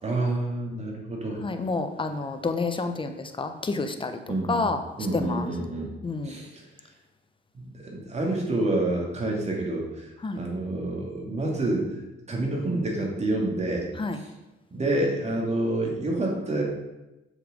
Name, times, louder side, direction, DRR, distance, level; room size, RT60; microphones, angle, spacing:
voice 1, 0.0-1.4 4.3-4.7 5.0-5.9 6.2-6.6 7.5-10.1 10.3-11.9 12.3-13.9 14.1-14.3 14.7-16.6, right 2 dB, 35° right, -1 dB, 2.8 m, -28 dB
voice 2, 1.4-4.2 4.5-4.8 5.1-5.5 6.0-6.4 10.2-10.4 14.0-14.2, left 3 dB, 25° left, 7 dB, 1.0 m, -29 dB
7.4 x 6.6 x 5.2 m, 1.0 s
cardioid pair, 90°, 20 cm